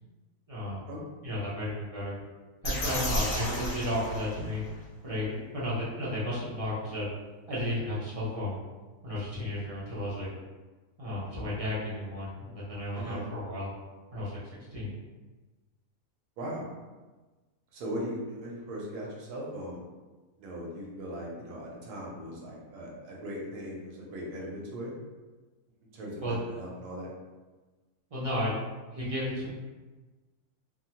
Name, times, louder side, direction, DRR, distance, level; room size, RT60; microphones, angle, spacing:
voice 1, 0.5-0.9 1.2-2.2 2.6-4.6 5.0-7.1 7.5-8.6 9.0-10.3 11.0-13.7 14.1-14.4 14.7-15.0 26.2-26.6 28.1-28.5 28.9-29.5, left 1 dB, 45° right, -8 dB, 0.4 m, -33 dB
sound 1, 2.6-4.8, equal, 65° left, 1.2 m, -32 dB
voice 2, 16.4-16.7 17.7-19.8 20.4-24.9 25.9-27.1, equal, 85° right, -3 dB, 1.3 m, -39 dB
3.5 x 2.0 x 2.9 m, 1.3 s
omnidirectional pair, 1.6 m